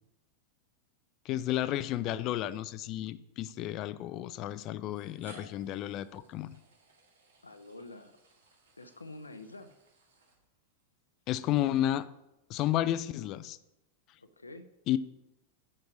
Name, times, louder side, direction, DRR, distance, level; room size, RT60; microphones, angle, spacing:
voice 1, 1.3-6.5 11.3-12.1 12.5-13.6 14.9-15.0, left 13 dB, 40° left, 15 dB, 0.4 m, -32 dB
sound 1, 2.6-2.7 3.8-3.9 4.8-10.8, right 2 dB, 65° right, 1.8 m, -60 dB
voice 2, 7.4-8.1 8.8-9.7 14.2-14.7, left 2 dB, 80° left, 9 dB, 0.7 m, -47 dB
7.8 x 6.5 x 6.1 m, 0.91 s
figure-of-eight pair, 90°, 0 cm